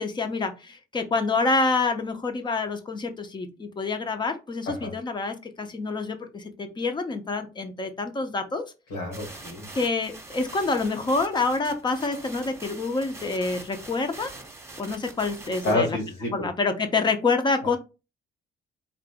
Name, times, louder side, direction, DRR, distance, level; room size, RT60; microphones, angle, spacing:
voice 1, 0.0-8.6 9.7-14.3 14.8-16.0 16.3-17.8, left 3 dB, 25° left, 7 dB, 0.8 m, -27 dB
voice 2, 8.9-9.7 15.6-16.5, left 1 dB, 85° left, -4 dB, 1.9 m, -28 dB
sound 1, 9.1-15.8, right 2 dB, 15° right, 1.0 m, -43 dB
3.9 x 2.6 x 3.5 m, 0.29 s
cardioid pair, 110°, 17 cm